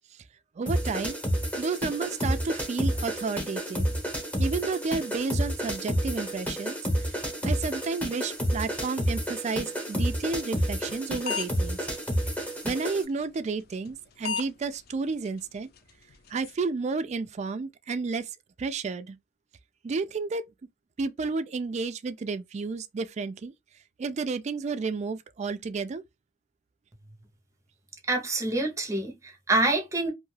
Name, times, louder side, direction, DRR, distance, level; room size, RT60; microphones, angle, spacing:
voice 1, 0.6-1.2 1.6-3.9 4.4-11.8 12.6-15.7 16.3-18.3 18.6-19.2 19.8-20.4 21.0-23.5 24.0-26.0, right 4 dB, 40° right, 0.3 m, -31 dB
sound 1, 0.7-13.0, equal, 10° left, 1.1 m, -30 dB
sound 2, 10.9-11.0 11.3-11.7 12.2-12.3 13.7-13.9 14.2-14.4 14.7-14.8 15.2-15.3 15.8-15.9 16.1-16.5, left 6 dB, 55° left, 0.4 m, -31 dB
voice 2, 28.1-30.1, right 2 dB, 15° right, 0.7 m, -26 dB
2.5 x 2.3 x 3.2 m
head